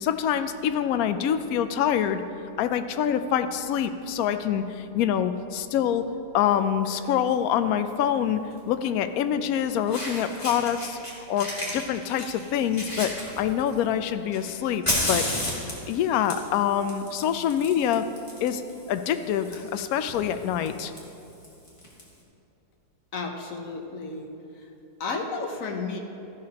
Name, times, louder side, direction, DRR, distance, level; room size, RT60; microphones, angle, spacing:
voice 1, 0.0-2.2 2.6-6.1 6.3-11.0 11.3-15.3 15.9-18.1 18.4-18.6 18.9-20.9, left 9 dB, 70° left, 10 dB, 0.9 m, -25 dB
Fire, 6.8-7.1 8.5-8.6 9.5-9.6 9.9-11.1 11.4-13.8 14.3-22.0, left 1 dB, 20° left, 1.9 m, -33 dB
voice 2, 23.1-24.3 24.5-24.7 25.0-26.0, left 4 dB, 55° left, 2 dB, 1.3 m, -32 dB
13.5 x 11.5 x 2.9 m, 2.8 s
omnidirectional pair, 1.8 m